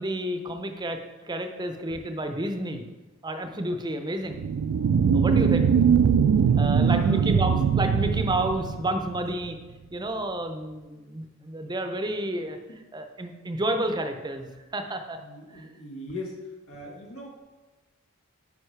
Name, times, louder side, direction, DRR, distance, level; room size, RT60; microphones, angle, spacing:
voice 1, 0.0-2.8 3.2-4.5 5.1-5.7 6.6-9.6 9.9-12.6 12.9-14.5 14.7-15.2 15.5-15.7, right 1 dB, 20° right, 6 dB, 0.5 m, -30 dB
sound 1, 4.3-9.3, right 7 dB, 70° right, 0.3 m, -21 dB
voice 2, 6.8-7.2 12.7-12.8 15.2-16.4 16.7-17.4, left 2 dB, 85° left, -2 dB, 1.5 m, -40 dB
9.2 x 5.3 x 3.3 m, 1.1 s
head